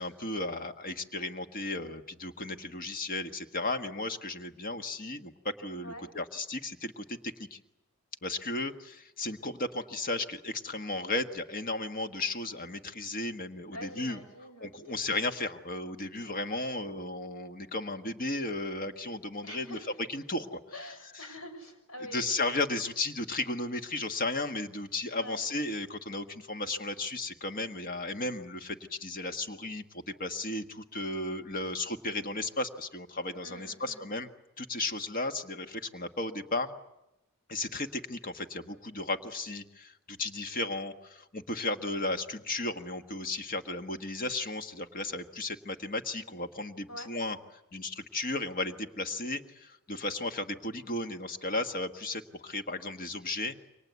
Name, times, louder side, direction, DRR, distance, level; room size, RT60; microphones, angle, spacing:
voice 1, 0.0-7.6 8.2-14.2 14.6-19.8 20.1-20.6 21.1-21.2 22.1-34.3 34.6-36.7 37.5-47.4 47.7-53.6, left 2 dB, 40° left, 7 dB, 1.5 m, -35 dB
voice 2, 13.7-15.0 19.4-20.0 20.7-22.2 25.1-25.4 33.4-34.1 46.9-47.1, equal, 80° left, 6 dB, 6.6 m, -45 dB
29.0 x 24.5 x 8.2 m, 0.91 s
head